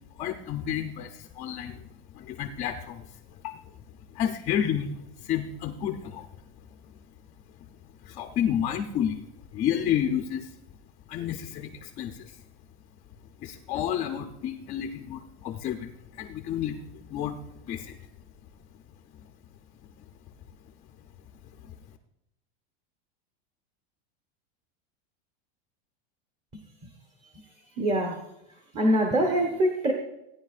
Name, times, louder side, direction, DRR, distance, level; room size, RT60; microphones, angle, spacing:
voice 1, 0.2-1.8 2.1-3.0 3.4-3.6 4.1-6.3 8.0-9.2 9.5-10.5 11.1-12.4 13.4-17.4 17.7-18.0 21.6-21.7, left 9 dB, 20° left, 5 dB, 0.5 m, -30 dB
voice 2, 26.5-26.9 27.7-28.2 28.7-29.9, right 1 dB, 20° right, 3 dB, 1.0 m, -25 dB
17.0 x 9.9 x 2.4 m, 0.85 s
supercardioid pair, 165°, 32 cm